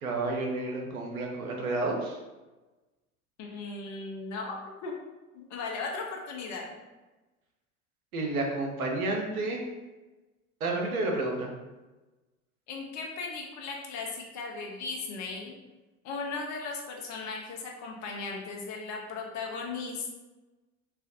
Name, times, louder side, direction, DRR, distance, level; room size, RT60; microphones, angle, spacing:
voice 1, 0.0-2.2 8.1-9.6 10.6-11.5, right 2 dB, 80° right, 1 dB, 0.8 m, -30 dB
voice 2, 3.4-4.9 5.3-6.7 12.7-15.6 16.0-20.1, left 4 dB, 40° left, 0 dB, 0.8 m, -37 dB
4.3 x 2.3 x 2.6 m, 1.1 s
figure-of-eight pair, 70°, 43 cm